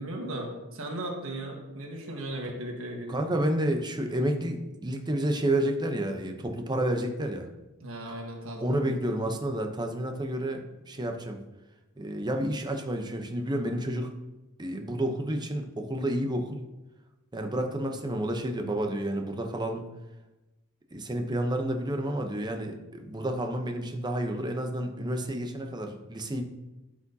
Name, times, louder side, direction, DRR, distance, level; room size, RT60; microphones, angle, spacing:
voice 1, 0.0-3.2 7.8-8.9, right 1 dB, 65° right, 1 dB, 1.4 m, -36 dB
voice 2, 3.1-7.5 8.6-11.4 12.0-14.1 14.6-16.6 17.3-19.9 20.9-26.4, right 1 dB, 20° right, 4 dB, 0.7 m, -30 dB
12.0 x 4.9 x 2.7 m, 1.1 s
head